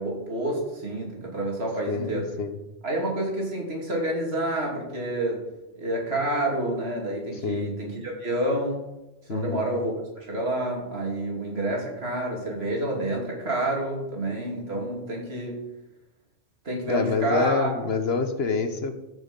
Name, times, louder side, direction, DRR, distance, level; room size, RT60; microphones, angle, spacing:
voice 1, 0.0-2.3 2.8-5.4 5.7-8.9 9.3-9.9 10.3-15.7 16.6-17.7, right 1 dB, 55° right, -1 dB, 3.1 m, -28 dB
voice 2, 1.9-2.6 7.4-7.7 9.3-9.6 16.9-18.9, left 4 dB, 60° left, 8 dB, 1.2 m, -27 dB
14.5 x 6.3 x 5.4 m, 1.0 s
omnidirectional pair, 1.2 m